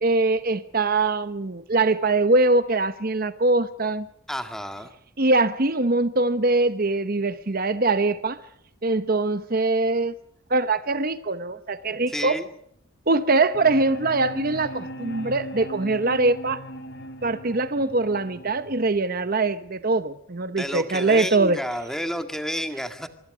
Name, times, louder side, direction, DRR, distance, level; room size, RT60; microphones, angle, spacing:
voice 1, 0.0-4.1 5.2-8.4 8.8-10.1 10.5-12.4 13.1-16.6 17.2-21.6, right 3 dB, 40° right, 0.9 m, -22 dB
voice 2, 4.3-4.9 12.1-12.5 20.6-23.1, equal, ahead, 2.0 m, -30 dB
sound 1, 13.5-19.5, equal, 50° left, 3.4 m, -39 dB
25.0 x 24.0 x 5.1 m
head